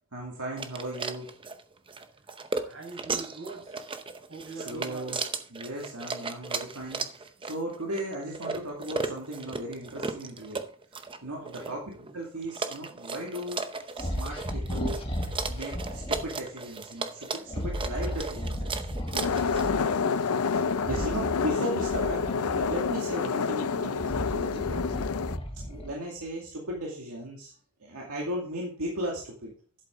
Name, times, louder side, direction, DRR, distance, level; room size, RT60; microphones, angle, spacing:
voice 1, 0.1-1.3 4.5-5.2 5.5-13.6 13.9-15.0 15.5-18.9 19.4-19.7 20.5-25.0 25.5-27.5 27.8-29.5, right 1 dB, 90° right, -2 dB, 2.3 m, -36 dB
sound 1, 0.6-19.8, right 4 dB, 25° right, 0.7 m, -36 dB
voice 2, 2.6-3.8 4.3-5.1 11.4-11.8 19.7-20.9, right 4 dB, 65° right, 0 dB, 5.5 m, -43 dB
sound 2, 14.0-16.3 17.5-19.8 20.8-23.1 23.7-26.0, equal, 25° left, 1.6 m, -35 dB
sound 3, 19.1-25.4, left 5 dB, 80° left, 0.5 m, -28 dB
11.5 x 8.1 x 3.8 m, 0.42 s
head